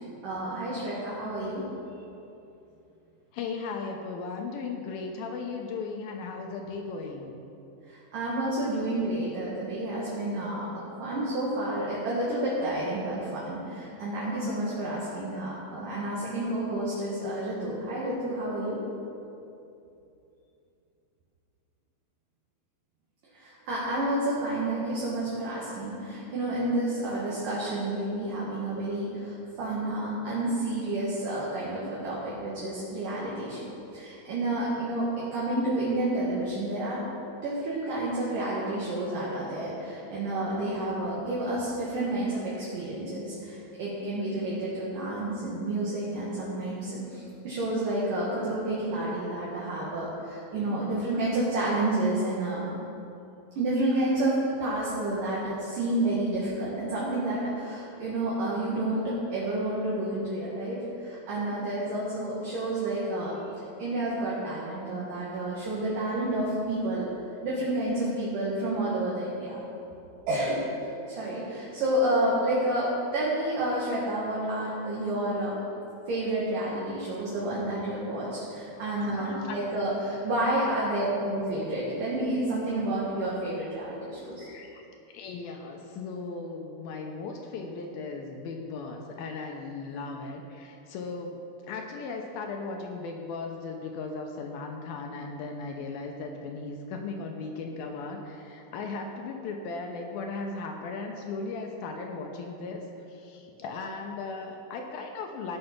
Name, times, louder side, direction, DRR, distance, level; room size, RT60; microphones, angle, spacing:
voice 1, 0.2-1.6 7.9-18.8 23.3-33.6 33.9-37.0 37.4-52.7 53.6-63.4 63.8-67.1 67.4-69.6 70.2-70.6 71.1-75.6 76.1-84.5, right 1 dB, 60° right, -7 dB, 3.1 m, -30 dB
voice 2, 3.3-7.3 78.8-80.0 84.4-84.8 85.1-91.4 91.7-105.6, left 4 dB, 75° left, 3 dB, 2.5 m, -37 dB
15.5 x 6.7 x 6.0 m, 2.8 s
omnidirectional pair, 4.6 m